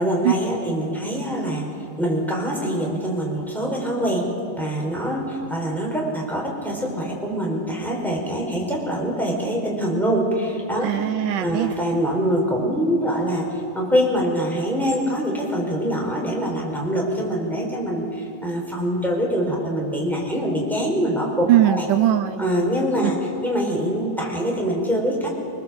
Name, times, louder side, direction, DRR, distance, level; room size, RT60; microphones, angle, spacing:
voice 1, 0.0-1.7 2.0-10.9 11.4-13.4 13.7-21.9 22.4-23.2 23.4-25.3, equal, ahead, -2 dB, 4.3 m, -24 dB
voice 2, 10.8-11.8 21.5-22.4 23.0-23.1, right 12 dB, 80° right, 10 dB, 1.9 m, -20 dB
25.5 x 20.5 x 7.7 m, 2.6 s
omnidirectional pair, 4.3 m